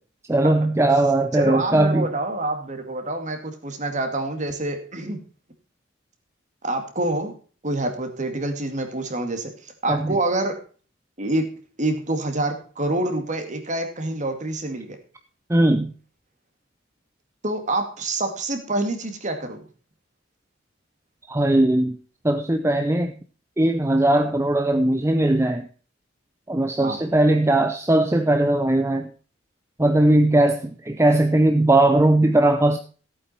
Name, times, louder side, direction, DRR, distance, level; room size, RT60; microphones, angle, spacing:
voice 1, 0.3-2.1 9.9-10.2 15.5-15.9 21.3-22.0 22.2-23.1 23.6-25.7 26.5-29.1 29.8-32.8, right 1 dB, 15° right, 7 dB, 0.7 m, -19 dB
voice 2, 1.3-5.2 6.6-7.3 7.6-10.5 11.2-11.5 11.8-15.0 17.4-19.6 26.8-27.0, right 2 dB, 40° right, 6 dB, 2.2 m, -26 dB
15.0 x 8.6 x 4.2 m, 0.39 s
head